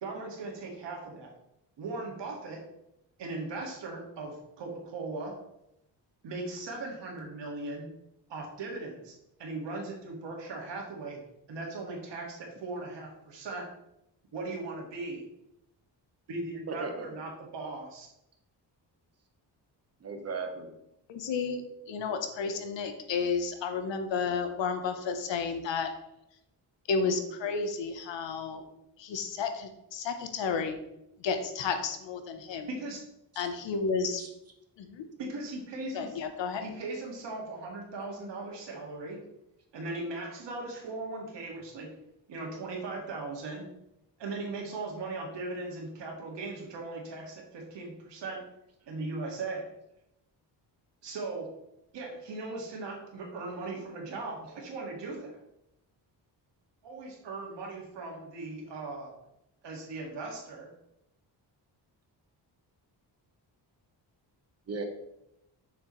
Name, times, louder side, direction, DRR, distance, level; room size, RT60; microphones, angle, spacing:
voice 1, 0.0-1.3 1.8-2.6 3.2-5.4 6.2-7.9 8.3-11.2 11.5-13.7 14.3-15.3 16.3-18.1 32.7-33.0 35.2-36.2 36.6-39.2 39.7-41.9 42.3-43.7 44.2-48.4 48.9-49.7 51.0-51.6 51.9-55.3 56.8-59.1 59.6-60.7, right 3 dB, 75° right, 0 dB, 2.1 m, -38 dB
voice 2, 16.7-17.2 20.0-20.7 33.3-33.5 34.2-34.3 64.7-64.8, right 4 dB, 35° right, 4 dB, 1.2 m, -37 dB
voice 3, 21.1-21.6 21.9-25.9 26.9-28.6 29.0-30.8 31.2-32.7 33.4-34.2 34.8-35.0 35.9-36.6, left 5 dB, 80° left, 7 dB, 1.1 m, -32 dB
6.8 x 6.4 x 3.2 m, 0.83 s
wide cardioid pair, 145°, 43 cm